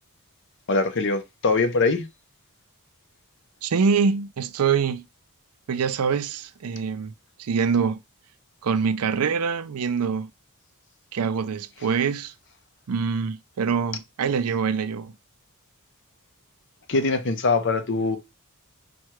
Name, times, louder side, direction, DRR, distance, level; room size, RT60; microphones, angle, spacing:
voice 1, 0.7-2.1 16.9-18.2, left 3 dB, 55° left, 0.7 m, -22 dB
voice 2, 3.6-5.1 5.7-7.1 7.4-8.0 8.6-10.3 11.1-12.3 12.9-15.1, right 6 dB, 90° right, 0.5 m, -24 dB
4.4 x 2.3 x 4.7 m
head